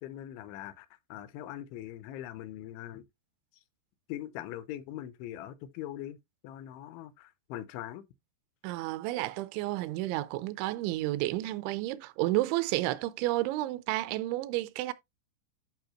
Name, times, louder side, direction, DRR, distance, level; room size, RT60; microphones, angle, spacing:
voice 1, 0.0-3.0 4.1-6.2 6.4-8.1, left 12 dB, 85° left, 3.1 m, -41 dB
voice 2, 8.6-14.9, right 17 dB, 85° right, 2.9 m, -31 dB
11.0 x 4.2 x 2.9 m
omnidirectional pair, 5.3 m